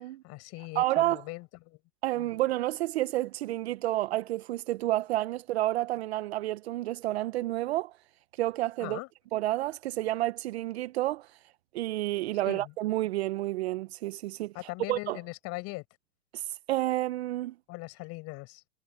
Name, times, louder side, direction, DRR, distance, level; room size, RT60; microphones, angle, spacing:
voice 1, 0.2-1.8 2.2-2.4 8.8-9.1 12.4-12.7 14.5-15.8 17.7-18.6, left 24 dB, 30° left, 7.0 m, -40 dB
voice 2, 0.7-1.2 2.0-7.9 8.4-9.0 9.3-11.3 11.7-14.5 14.9-15.2 16.3-16.4 16.7-17.5, right 16 dB, 40° right, 1.0 m, -30 dB
hypercardioid pair, 145°, 47 cm